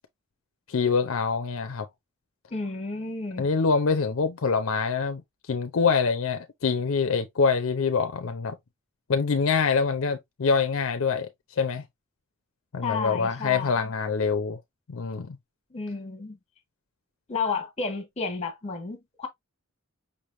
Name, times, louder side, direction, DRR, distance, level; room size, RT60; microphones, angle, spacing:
voice 1, 0.7-1.9 3.4-5.2 5.5-8.6 9.1-11.3 11.6-11.8 12.7-14.6 14.9-15.4, left 5 dB, 70° left, 0.5 m, -25 dB
voice 2, 2.5-3.5 12.8-13.9 15.7-16.4 17.3-19.3, left 4 dB, 35° left, 1.3 m, -32 dB
5.3 x 3.3 x 2.4 m
head